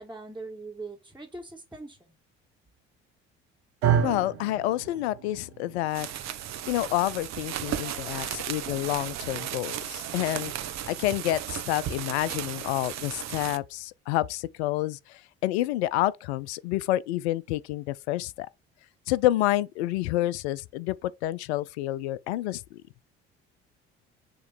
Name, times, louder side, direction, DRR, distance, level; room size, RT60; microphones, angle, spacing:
voice 1, 0.0-2.1, right 3 dB, 5° right, 1.7 m, -41 dB
sound 1, 3.8-12.1, right 8 dB, 90° right, 1.0 m, -34 dB
voice 2, 4.0-6.1 6.7-10.5 10.9-18.5 19.1-22.8, left 15 dB, 80° left, 0.5 m, -28 dB
sound 2, 5.9-13.6, right 11 dB, 55° right, 1.0 m, -35 dB
6.9 x 3.0 x 4.6 m
hypercardioid pair, 60°, 33 cm